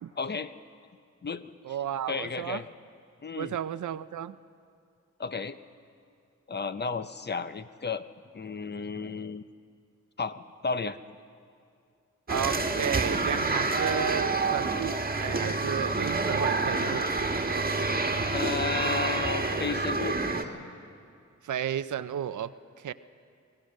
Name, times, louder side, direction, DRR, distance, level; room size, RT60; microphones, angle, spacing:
voice 1, 0.2-0.5 1.2-1.5 2.1-2.7 3.2-3.6 5.2-5.6 6.5-8.0 8.3-9.4 10.2-11.0 18.3-20.5, left 5 dB, 35° left, 12 dB, 0.7 m, -33 dB
voice 2, 1.6-2.6 3.4-4.4 12.3-17.1 21.4-22.5 22.8-22.9, right 9 dB, 90° right, 14 dB, 0.6 m, -33 dB
sound 1, 12.3-20.4, right 3 dB, 30° right, 1.4 m, -28 dB
24.5 x 17.5 x 6.5 m, 2.3 s
wide cardioid pair, 95°, 29 cm